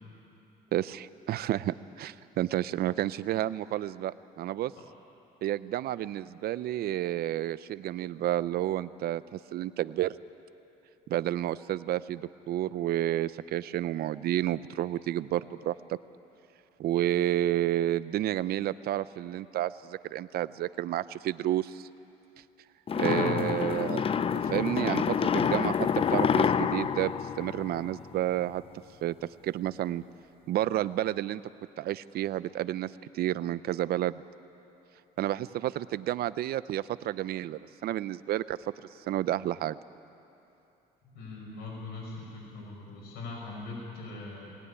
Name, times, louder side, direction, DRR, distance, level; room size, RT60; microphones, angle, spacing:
voice 1, 0.7-4.7 5.4-10.1 11.1-16.0 16.8-21.9 23.0-24.0 24.4-27.1 27.4-28.6 29.0-30.0 30.5-31.4 31.8-34.2 35.2-38.6 39.1-39.8, right 13 dB, 65° right, 16 dB, 0.6 m, -30 dB
sound 1, 22.9-28.2, left 7 dB, 35° left, 0.6 m, -27 dB
voice 2, 23.0-23.4 41.0-44.5, left 3 dB, 80° left, -3 dB, 5.7 m, -40 dB
21.0 x 18.0 x 9.9 m, 2.8 s
cardioid pair, 110°, 17 cm